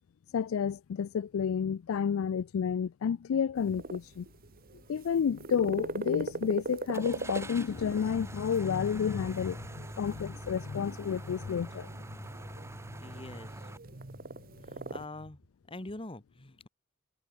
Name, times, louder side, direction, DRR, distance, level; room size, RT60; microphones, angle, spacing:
voice 1, 0.3-4.3 4.9-11.9, left 7 dB, 85° left, 0.4 m, -30 dB
sound 1, 3.6-15.1, right 3 dB, 45° right, 1.2 m, -42 dB
Car / Engine starting, 6.9-13.8, right 1 dB, 15° right, 1.3 m, -44 dB
voice 2, 13.0-13.5 14.7-15.4 15.7-16.7, left 2 dB, 25° left, 1.7 m, -44 dB
head